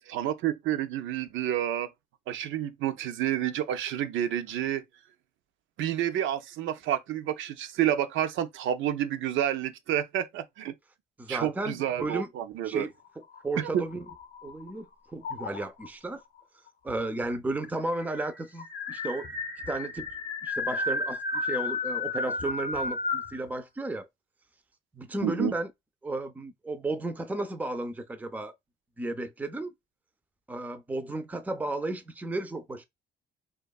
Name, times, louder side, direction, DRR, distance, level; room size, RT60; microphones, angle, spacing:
voice 1, 0.1-1.9 2.3-4.8 5.8-10.7 11.3-12.9 13.6-13.8 25.2-25.5, right 11 dB, 75° right, 0.4 m, -29 dB
voice 2, 11.2-12.3 12.6-12.9 13.4-14.1 14.4-14.9 15.1-16.2 16.8-19.3 19.7-20.1 20.4-24.1 24.9-25.7 26.0-28.5 29.0-29.7 30.5-32.8, right 2 dB, 10° right, 0.4 m, -33 dB
sound 1, 13.2-14.7 15.2-15.9 16.9-17.0 17.2-17.3 17.6-23.4, left 3 dB, 45° left, 0.6 m, -33 dB
2.6 x 2.2 x 2.2 m
cardioid pair, 90°, 20 cm